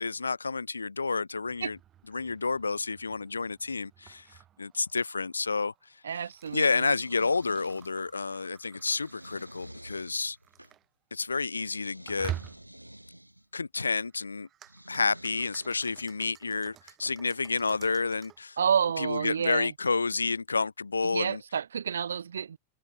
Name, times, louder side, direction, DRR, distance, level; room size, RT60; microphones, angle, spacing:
voice 1, 0.0-1.8 2.1-4.3 4.6-5.7 6.1-6.3 6.5-10.4 11.1-12.3 13.5-14.5 14.9-18.6 19.0-21.4, left 4 dB, 80° left, 0.6 m, -30 dB
sound 1, 1.4-10.9 12.1-12.9 13.8-18.4, right 11 dB, 30° right, 3.5 m, -48 dB
voice 2, 6.0-6.9 18.6-19.7 21.1-22.6, right 7 dB, 70° right, 0.7 m, -29 dB
sound 2, 6.5-8.1 8.7-10.7 11.6-13.5 14.6-16.2, right 1 dB, 90° right, 4.0 m, -49 dB
figure-of-eight pair, 90°, 0 cm